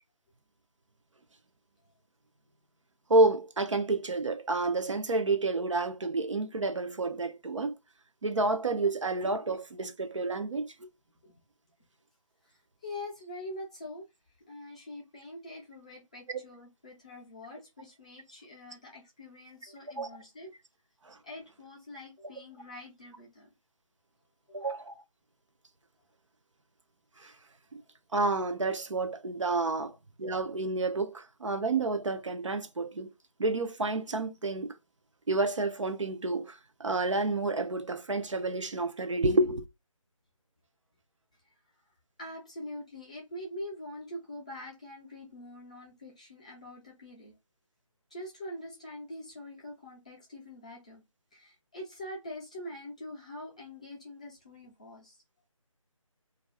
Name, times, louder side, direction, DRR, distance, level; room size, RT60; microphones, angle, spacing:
voice 1, 3.1-7.7 8.2-10.7 16.3-16.4 20.0-20.1 21.0-21.2 24.5-24.9 27.2-27.3 27.7-27.8 28.1-29.9 30.2-33.1 33.4-34.7 35.3-39.6, right 2 dB, 60° right, 0.5 m, -29 dB
voice 2, 12.4-14.1 14.5-20.5 21.2-23.5 24.5-24.7 29.8-29.9 42.2-47.3 48.1-51.0 51.3-55.2, left 1 dB, 10° left, 0.5 m, -44 dB
2.5 x 2.3 x 3.2 m
figure-of-eight pair, 160°, 17 cm